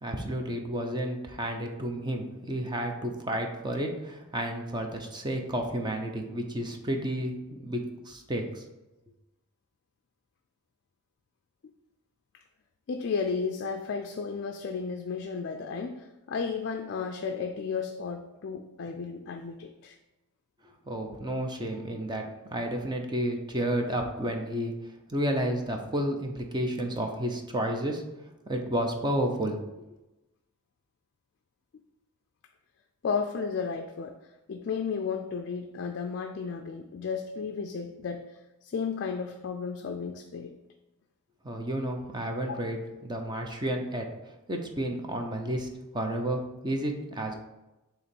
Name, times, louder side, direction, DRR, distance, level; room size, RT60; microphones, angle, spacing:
voice 1, 0.0-8.6 20.9-24.7 25.1-28.0 28.5-29.8 41.4-44.1 44.5-47.3, right 1 dB, 20° right, 3 dB, 0.6 m, -31 dB
voice 2, 12.9-20.0 33.0-34.2 34.5-38.2 38.6-40.5 42.4-42.6, left 5 dB, 50° left, 6 dB, 0.4 m, -33 dB
6.9 x 3.0 x 5.3 m, 1.0 s
head